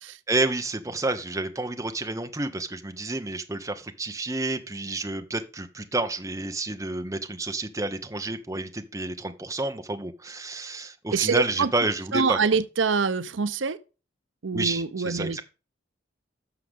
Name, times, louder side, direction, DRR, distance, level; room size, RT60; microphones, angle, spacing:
voice 1, 0.3-12.4 14.5-15.4, right 2 dB, 15° right, 1.0 m, -30 dB
voice 2, 11.1-11.7 12.1-13.8 14.4-15.4, right 5 dB, 80° right, 0.7 m, -25 dB
11.5 x 6.6 x 3.7 m
head